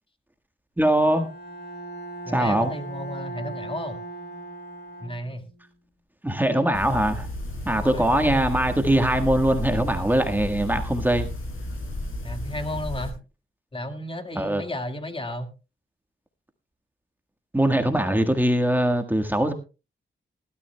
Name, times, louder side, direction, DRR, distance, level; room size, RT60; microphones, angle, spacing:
voice 1, 0.8-1.3 2.3-2.7 6.2-7.3 7.6-11.3 14.4-14.6 17.5-19.5, right 1 dB, 10° right, 6 dB, 1.5 m, -22 dB
Bowed string instrument, 1.1-5.6, right 2 dB, 55° left, 7.0 m, -38 dB
voice 2, 2.3-4.0 5.0-5.5 7.7-8.1 12.2-13.2 13.7-15.5, left 1 dB, 25° left, 6 dB, 1.9 m, -33 dB
sound 1, 6.7-13.1, left 1 dB, 75° left, 7.5 m, -32 dB
20.0 x 12.5 x 2.2 m, 0.31 s
cardioid pair, 75°, 21 cm